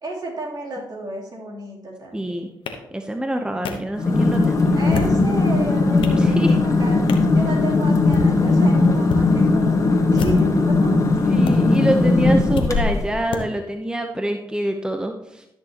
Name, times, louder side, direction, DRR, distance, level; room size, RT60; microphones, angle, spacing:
voice 1, 0.0-2.4 4.7-7.0 7.3-11.0 12.2-12.5, right 2 dB, 55° right, -3 dB, 3.2 m, -32 dB
voice 2, 2.1-2.5 2.9-4.8 6.2-6.6 11.3-15.5, right 1 dB, 10° right, 5 dB, 0.8 m, -25 dB
sound 1, 2.7-2.8 3.6-3.7 4.7-5.2 5.7-6.2 7.1-7.3 8.0-8.3 9.0-9.2 10.1-10.6 11.4-11.5 12.5-12.7 13.3-13.4, left 5 dB, 85° left, 1.0 m, -28 dB
sound 2, 4.0-13.2, left 3 dB, 40° left, 1.6 m, -18 dB
13.0 x 6.4 x 3.0 m, 0.86 s
cardioid pair, 60°, 9 cm